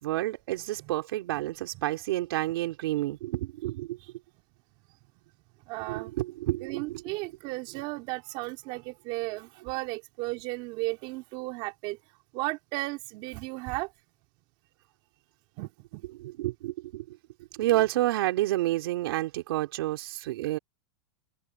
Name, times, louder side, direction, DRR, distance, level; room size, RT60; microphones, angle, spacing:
voice 1, 0.0-4.0 5.9-7.0 16.2-17.2 17.5-20.6, right 16 dB, 60° right, 4.1 m, -29 dB
voice 2, 5.7-6.1 6.6-12.0 12.3-13.9 15.6-16.0, right 23 dB, 40° right, 3.3 m, -35 dB
supercardioid pair, 155°, 14 cm